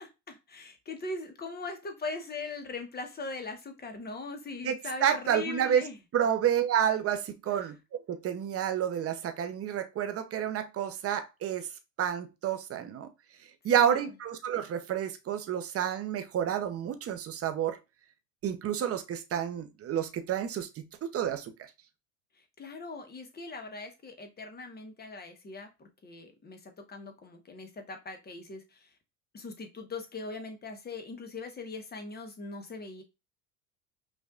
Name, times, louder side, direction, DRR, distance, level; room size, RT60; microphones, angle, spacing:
voice 1, 0.0-6.0 7.5-7.7 13.8-14.1 22.3-28.9 29.3-33.0, left 3 dB, 20° left, 1.0 m, -41 dB
voice 2, 4.6-5.8 6.1-7.8 8.1-11.7 12.0-13.1 13.6-17.8 18.4-21.5, right 9 dB, 30° right, 0.7 m, -29 dB
5.4 x 2.5 x 2.4 m
hypercardioid pair, 95°, 48 cm